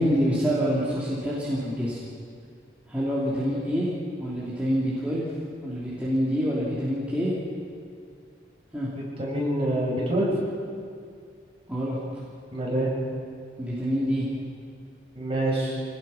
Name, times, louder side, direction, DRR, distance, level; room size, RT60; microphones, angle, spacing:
voice 1, 0.0-2.0 2.9-3.9 4.2-5.3 5.6-7.3 8.7-8.9 11.7-12.0 13.6-14.3, equal, 5° right, -9 dB, 3.3 m, -26 dB
voice 2, 9.2-10.3 12.5-12.9 15.1-15.8, right 1 dB, 30° right, -5 dB, 6.8 m, -26 dB
27.0 x 18.5 x 5.9 m, 2.3 s
head